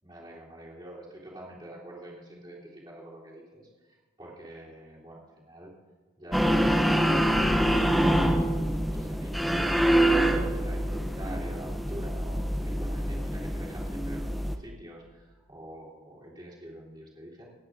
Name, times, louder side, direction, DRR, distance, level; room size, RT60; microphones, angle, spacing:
voice 1, 0.0-5.7 6.2-9.7 9.9-17.5, right 1 dB, 20° right, -6 dB, 3.1 m, -46 dB
sound 1, 6.3-14.6, equal, ahead, 0.6 m, -25 dB
28.0 x 9.5 x 2.6 m, 1.4 s
head